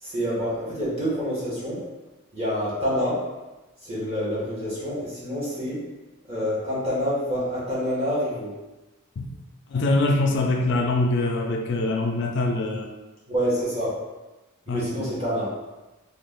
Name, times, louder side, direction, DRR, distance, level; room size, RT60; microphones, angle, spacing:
voice 1, 0.0-1.8 2.3-3.2 3.8-5.8 6.2-8.5 13.3-14.0 14.7-15.5, equal, 30° right, -9 dB, 1.2 m, -27 dB
voice 2, 9.7-12.9 14.7-15.1, left 2 dB, 55° left, 2 dB, 0.3 m, -24 dB
3.3 x 2.2 x 3.6 m, 1.1 s
head